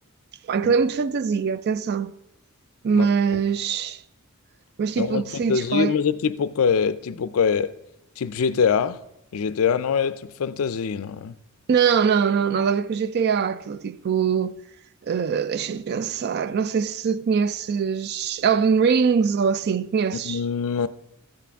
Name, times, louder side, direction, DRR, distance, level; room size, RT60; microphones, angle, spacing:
voice 1, 0.4-2.1 2.8-4.0 4.8-6.0 11.7-14.6 15.0-20.4, right 6 dB, 50° right, 0.3 m, -22 dB
voice 2, 3.0-3.4 5.0-7.7 8.2-9.0 9.3-11.3 20.2-20.9, left 6 dB, 70° left, 0.4 m, -24 dB
13.5 x 8.5 x 3.5 m
head